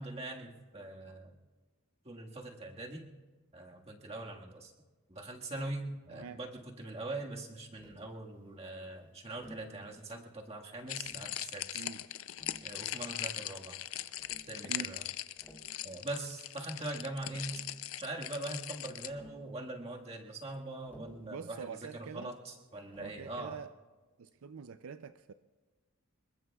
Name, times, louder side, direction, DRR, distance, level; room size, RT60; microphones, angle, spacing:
voice 1, 0.0-1.3 2.0-3.0 3.5-4.7 5.1-11.8 12.6-13.8 14.5-15.0 15.8-17.6 18.0-23.6, right 2 dB, 30° right, 0 dB, 1.7 m, -42 dB
voice 2, 6.1-6.4 11.7-12.0 14.6-15.0 21.2-22.3 23.0-23.7 24.2-25.3, right 6 dB, 80° right, 11 dB, 0.4 m, -45 dB
Tap, 7.8-8.1 9.4-9.7 10.8-11.3 12.4-13.2 14.2-14.5 15.2-15.7 16.9-17.0 17.3-17.8 19.1-19.5 20.9-21.3 22.9-23.3, equal, 10° left, 3.0 m, -55 dB
sound 1, 10.9-19.1, left 13 dB, 70° left, 0.5 m, -40 dB
26.0 x 22.0 x 2.4 m, 1.3 s
head